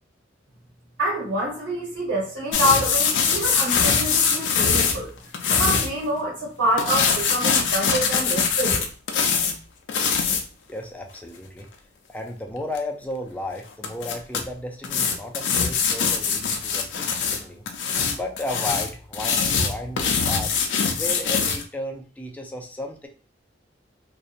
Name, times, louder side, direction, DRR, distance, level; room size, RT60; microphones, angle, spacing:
voice 1, 1.0-5.1 5.5-8.9, right 1 dB, 85° right, -7 dB, 1.1 m, -26 dB
sound 1, 2.5-5.9 6.8-9.5 9.9-10.4 12.8-12.9 13.8-14.4 14.8-17.4 17.7-21.6, left 6 dB, 70° left, 0.4 m, -22 dB
voice 2, 10.7-11.7 12.1-17.7 18.1-20.5 20.9-23.1, left 1 dB, 10° left, 2 dB, 0.4 m, -34 dB
2.7 x 2.2 x 2.4 m, 0.38 s
head